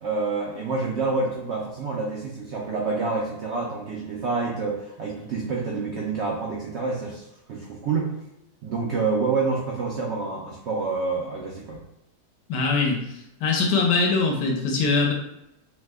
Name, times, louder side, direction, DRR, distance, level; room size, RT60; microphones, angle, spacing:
voice 1, 0.0-8.1 8.6-11.8, right 4 dB, 85° right, -2 dB, 0.6 m, -28 dB
voice 2, 12.5-13.0 13.4-15.1, left 4 dB, 85° left, 1 dB, 1.3 m, -22 dB
3.1 x 2.1 x 3.3 m, 0.86 s
omnidirectional pair, 1.8 m